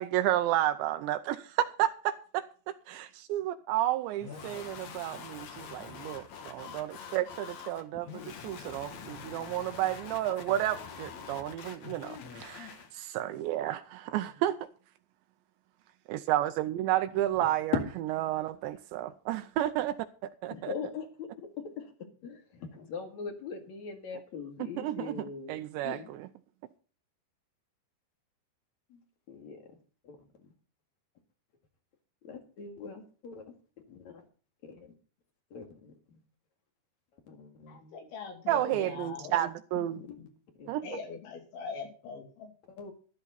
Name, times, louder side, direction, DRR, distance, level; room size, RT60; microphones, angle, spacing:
voice 1, 0.0-2.5 2.9-8.1 8.4-14.6 16.1-17.7 18.2-20.0 20.4-20.7 24.8-25.1 25.5-26.3 38.5-40.0 40.7-40.9, right 13 dB, 80° right, 2.9 m, -31 dB
sound 1, 4.2-12.9, left 6 dB, 65° left, 1.7 m, -45 dB
voice 2, 4.3-4.8 14.1-14.3 16.8-17.8 20.5-21.3 21.6-21.9 22.2-26.2 28.9-29.0 29.3-29.8 30.0-30.5 32.2-33.5 33.9-34.2 34.6-35.0 35.5-36.2 37.1-38.0 38.5-38.9 39.2-39.4 39.7-40.2 40.6-40.7 42.7-42.9, left 6 dB, 50° left, 2.7 m, -41 dB
voice 3, 37.7-39.3 40.0-40.2 40.8-42.5, left 5 dB, 90° left, 5.2 m, -42 dB
13.0 x 12.0 x 4.1 m
omnidirectional pair, 5.2 m